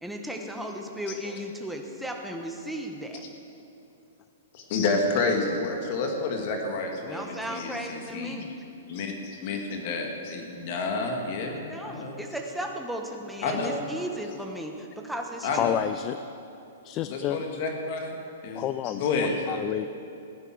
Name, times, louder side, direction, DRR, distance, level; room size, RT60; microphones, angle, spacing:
voice 1, 0.0-3.2 7.0-8.7 11.7-15.8, equal, ahead, 2 dB, 1.4 m, -36 dB
voice 2, 4.5-8.4 8.9-12.1 13.4-13.8 15.4-15.8 17.1-18.2 18.4-18.6 18.9-19.6, left 3 dB, 50° left, 2 dB, 2.3 m, -29 dB
voice 3, 15.5-16.2 16.8-17.4 18.6-19.9, left 12 dB, 30° left, 12 dB, 0.4 m, -29 dB
15.5 x 9.8 x 6.2 m, 2.8 s
hypercardioid pair, 130°, 0 cm